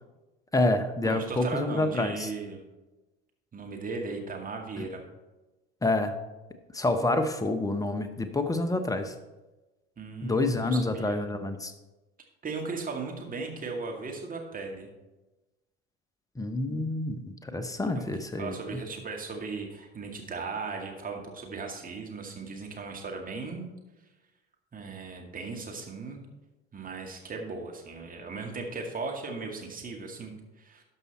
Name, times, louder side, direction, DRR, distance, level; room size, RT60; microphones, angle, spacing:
voice 1, 0.5-2.3 4.8-4.9 5.8-6.1 6.7-9.1 10.2-11.7 16.4-18.8, left 2 dB, 10° left, 9 dB, 1.0 m, -28 dB
voice 2, 1.0-2.6 3.5-5.0 10.0-11.2 12.4-14.9 17.9-18.1 18.3-23.7 24.7-26.2 26.7-30.8, right 4 dB, 25° right, 1 dB, 2.1 m, -37 dB
12.0 x 5.5 x 4.3 m, 1.1 s
figure-of-eight pair, 60°, 32 cm